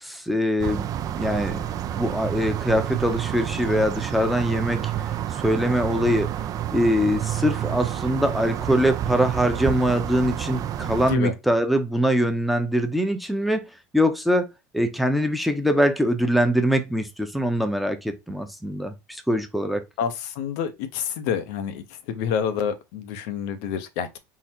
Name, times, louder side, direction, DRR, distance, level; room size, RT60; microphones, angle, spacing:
voice 1, 0.0-1.6 1.9-4.9 5.3-6.3 6.7-13.7 13.9-14.5 14.7-19.8, equal, ahead, 0.7 m, -23 dB
sound 1, 0.6-11.2, right 11 dB, 45° right, 0.5 m, -29 dB
voice 2, 11.0-11.3 20.0-24.2, left 8 dB, 75° left, 0.8 m, -28 dB
3.8 x 2.1 x 4.3 m
supercardioid pair, 105°, 9 cm